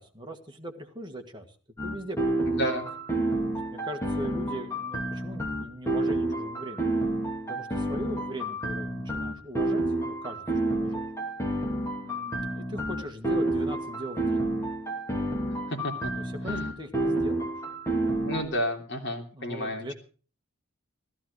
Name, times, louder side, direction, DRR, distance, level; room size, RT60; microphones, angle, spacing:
voice 1, 0.0-1.5 1.8-2.6 3.7-6.9 7.4-11.1 12.0-14.4 16.1-17.6 19.3-19.9, equal, 20° right, 4 dB, 1.8 m, -40 dB
sound 1, 1.8-18.4, right 1 dB, 15° left, 2.5 m, -29 dB
voice 2, 2.5-2.8 15.5-16.1 16.4-16.7 18.2-19.9, equal, 55° left, 2 dB, 3.1 m, -31 dB
15.0 x 14.5 x 4.8 m, 0.39 s
head